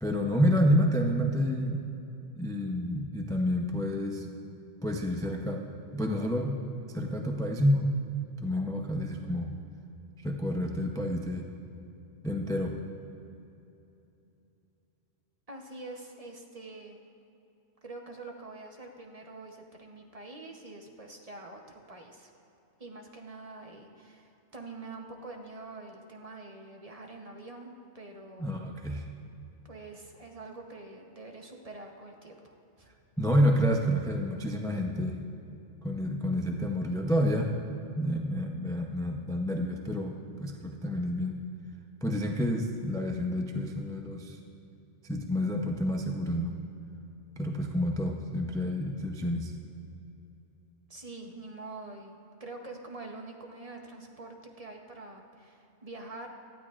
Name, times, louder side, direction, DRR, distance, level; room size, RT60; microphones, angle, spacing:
voice 1, 0.0-1.8 2.3-4.3 4.8-5.6 5.9-6.5 6.9-7.9 8.4-9.5 10.2-11.4 12.2-12.7 28.4-29.1 33.2-35.2 35.8-37.5 38.0-40.1 40.4-41.3 42.0-44.4 45.0-46.6 47.4-49.5, equal, 5° left, 2 dB, 0.4 m, -29 dB
voice 2, 15.5-17.0 17.8-22.3 22.8-28.5 29.6-32.9 50.9-56.3, right 2 dB, 35° right, 2 dB, 0.9 m, -45 dB
17.5 x 12.0 x 2.5 m, 2.9 s
omnidirectional pair, 1.2 m